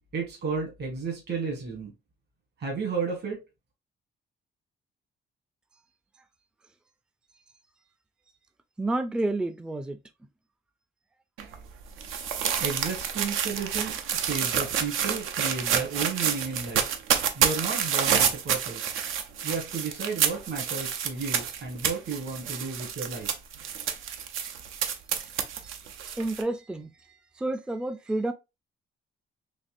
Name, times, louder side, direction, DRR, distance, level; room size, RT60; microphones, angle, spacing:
voice 1, 0.1-1.9 2.6-3.4 12.6-16.8 17.3-19.0 19.4-23.3, right 5 dB, 55° right, 1.6 m, -33 dB
voice 2, 8.8-10.0 11.5-11.6 25.1-25.3 25.6-28.3, right 2 dB, 5° right, 0.3 m, -31 dB
sound 1, 11.4-26.4, right 8 dB, 85° right, 0.6 m, -29 dB
4.1 x 2.8 x 2.5 m
cardioid pair, 90°, 20 cm